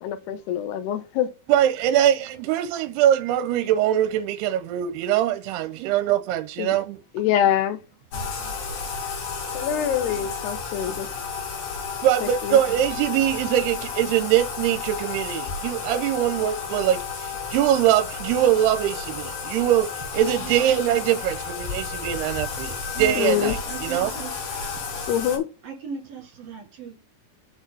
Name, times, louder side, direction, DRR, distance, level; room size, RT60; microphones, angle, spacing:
voice 1, 0.0-1.3 6.6-6.8 7.1-7.8 9.5-11.1 12.2-12.6 23.2-23.6 25.1-25.5, left 10 dB, 85° left, 2.9 m, -25 dB
voice 2, 1.5-7.0 12.0-17.0 17.5-24.1, right 11 dB, 90° right, 2.7 m, -22 dB
voice 3, 5.7-6.0 7.2-7.3 8.1-8.3 20.4-20.7 22.9-24.4 25.6-26.9, right 7 dB, 45° right, 2.6 m, -37 dB
Bathtub (filling or washing), 8.1-25.4, left 5 dB, 65° left, 4.1 m, -32 dB
6.6 x 6.3 x 3.9 m
omnidirectional pair, 4.7 m